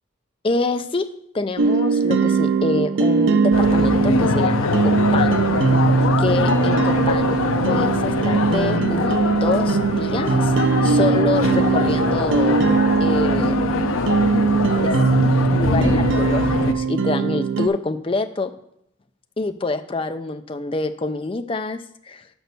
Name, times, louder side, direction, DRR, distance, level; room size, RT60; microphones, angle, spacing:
voice 1, 0.4-1.1 1.3-5.4 6.2-7.4 7.6-10.5 10.8-12.6 13.0-13.5 14.8-14.9 15.5-18.5 19.4-22.2, left 3 dB, 25° left, 8 dB, 0.4 m, -26 dB
sound 1, 1.6-17.7, right 4 dB, 65° right, 0.5 m, -20 dB
sound 2, 3.5-16.7, left 4 dB, 75° left, 0.6 m, -23 dB
6.2 x 5.2 x 6.7 m, 0.75 s
head